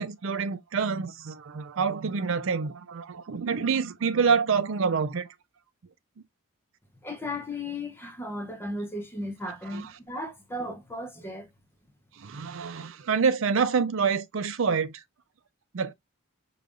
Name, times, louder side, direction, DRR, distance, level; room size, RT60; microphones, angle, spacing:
voice 1, 0.0-5.3 9.7-9.8 12.2-14.9 15.7-15.9, right 5 dB, 65° right, 0.5 m, -27 dB
voice 2, 7.0-11.5, left 1 dB, 10° left, 0.7 m, -35 dB
5.0 x 2.4 x 2.4 m
head